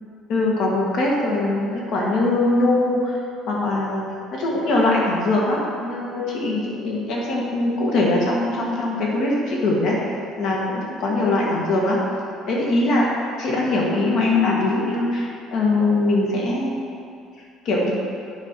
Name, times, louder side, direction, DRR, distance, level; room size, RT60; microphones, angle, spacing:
voice 1, 0.3-3.1 3.5-4.1 4.3-12.0 12.5-13.1 13.4-17.0 17.7-17.9, left 2 dB, 65° left, -3 dB, 1.8 m, -22 dB
9.5 x 5.4 x 4.6 m, 2.5 s
cardioid pair, 140°, 0 cm